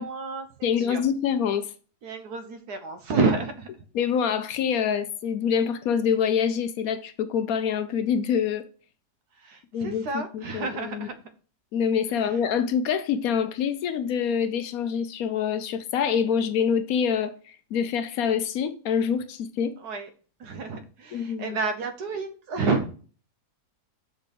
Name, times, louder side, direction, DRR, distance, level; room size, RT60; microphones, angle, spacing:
voice 1, 0.0-1.0 2.0-3.7 9.4-11.1 12.1-12.2 19.8-20.1 20.4-22.9, right 4 dB, 75° right, 1.5 m, -29 dB
voice 2, 0.6-1.7 3.9-8.6 9.7-11.1 11.7-19.7 21.1-21.6, left 7 dB, 70° left, 1.0 m, -26 dB
6.3 x 4.2 x 5.2 m
omnidirectional pair, 1.7 m